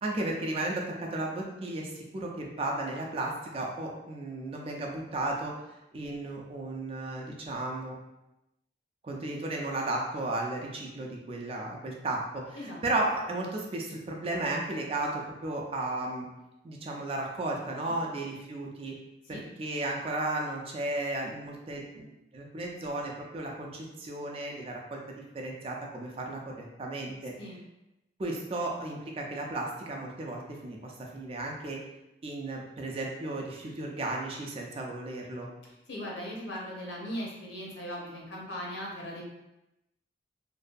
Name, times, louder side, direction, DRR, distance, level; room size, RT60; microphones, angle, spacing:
voice 1, 0.0-5.6 5.9-7.9 9.0-16.3 16.6-19.0 19.3-27.3 28.2-31.8 32.2-35.5, right 2 dB, 30° right, 0 dB, 0.3 m, -34 dB
voice 2, 35.9-39.2, equal, 80° left, -4 dB, 0.8 m, -38 dB
2.6 x 2.2 x 2.5 m, 0.94 s
head